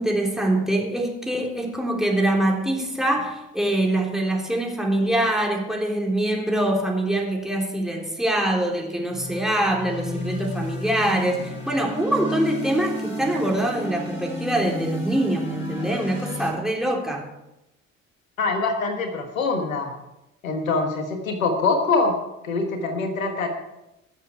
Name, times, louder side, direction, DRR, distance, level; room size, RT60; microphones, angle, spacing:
voice 1, 0.0-17.3, right 1 dB, ahead, -1 dB, 3.6 m, -24 dB
sound 1, 9.0-16.5, equal, 30° left, 5.9 m, -32 dB
voice 2, 18.4-19.9 20.4-22.2 22.4-23.5, left 3 dB, 90° left, 5 dB, 1.4 m, -24 dB
20.5 x 7.4 x 4.7 m, 0.91 s
hypercardioid pair, 55°, 39 cm